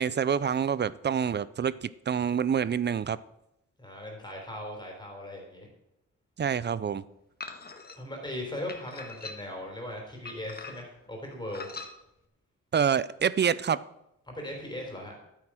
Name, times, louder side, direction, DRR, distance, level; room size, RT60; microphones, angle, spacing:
voice 1, 0.0-3.2 6.4-7.0 12.7-13.8, right 7 dB, 35° right, 18 dB, 0.5 m, -27 dB
voice 2, 3.8-5.7 7.9-11.7 14.3-15.1, left 1 dB, 15° left, 0 dB, 3.7 m, -38 dB
sound 1, 7.4-8.0 8.7-9.6 10.2-11.0 11.5-11.9, left 4 dB, 30° left, 1.5 m, -42 dB
12.5 x 9.3 x 6.2 m, 0.84 s
wide cardioid pair, 135°, 30 cm